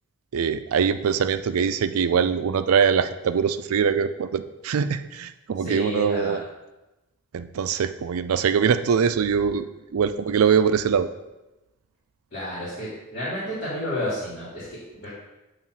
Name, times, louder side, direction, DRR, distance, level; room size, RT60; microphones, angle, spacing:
voice 1, 0.3-6.4 7.3-9.6 9.9-11.1, right 7 dB, 85° right, 12 dB, 0.4 m, -22 dB
voice 2, 5.6-6.4 12.3-15.1, left 1 dB, 40° left, -9 dB, 2.2 m, -31 dB
7.3 x 3.2 x 6.1 m, 1.0 s
head